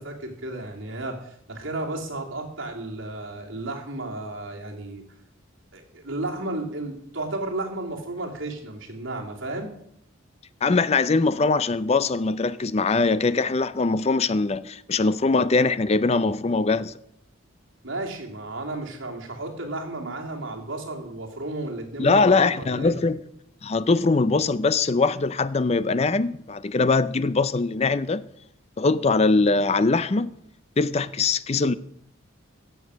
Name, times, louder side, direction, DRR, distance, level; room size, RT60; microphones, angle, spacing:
voice 1, 0.0-5.0 5.7-9.7 17.8-23.0, right 2 dB, 75° right, 2.8 m, -33 dB
voice 2, 10.6-16.9 22.0-23.2 23.6-28.2 28.8-30.3 30.8-31.7, left 3 dB, 30° left, 0.5 m, -22 dB
16.0 x 7.0 x 6.3 m
head